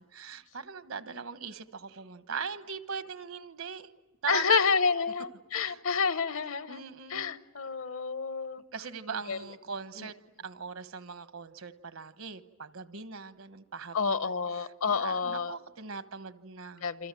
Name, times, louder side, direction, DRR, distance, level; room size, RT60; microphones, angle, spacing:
voice 1, 0.0-3.9 4.2-4.7 5.5-5.8 6.7-7.4 8.7-10.2 10.4-16.9, right 5 dB, 80° right, 12 dB, 1.2 m, -40 dB
voice 2, 4.3-6.8 7.1-8.6 9.1-9.4 10.0-10.1 13.9-15.6 16.8-17.1, left 5 dB, 75° left, 13 dB, 1.0 m, -29 dB
27.5 x 27.0 x 7.6 m, 1.2 s
head